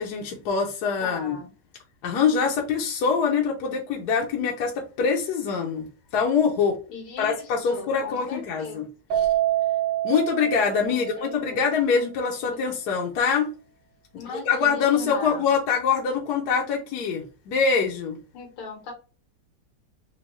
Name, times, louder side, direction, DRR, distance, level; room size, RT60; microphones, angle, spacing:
voice 1, 0.0-1.4 2.0-6.8 7.2-8.9 9.1-9.3 10.0-13.5 14.1-18.2, left 6 dB, 65° left, 1.0 m, -24 dB
voice 2, 1.0-1.5 6.9-8.8 10.9-11.6 14.2-15.5 18.3-18.9, left 5 dB, 85° left, 2.0 m, -38 dB
Keyboard (musical), 9.1-11.6, right 13 dB, 65° right, 1.8 m, -26 dB
4.4 x 2.3 x 2.9 m
omnidirectional pair, 2.3 m